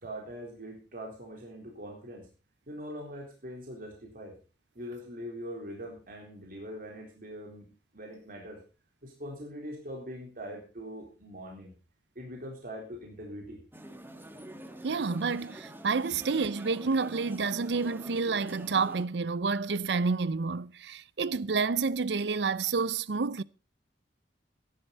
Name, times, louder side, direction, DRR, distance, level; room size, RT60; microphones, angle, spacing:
voice 1, 0.0-2.3 2.7-4.4 4.8-8.6 9.0-11.7 12.2-13.6, equal, 55° right, 3.8 m, -42 dB
sound 1, 13.7-19.0, right 1 dB, 10° right, 1.6 m, -46 dB
voice 2, 14.8-23.4, right 4 dB, 70° right, 0.6 m, -29 dB
16.5 x 11.5 x 4.1 m
head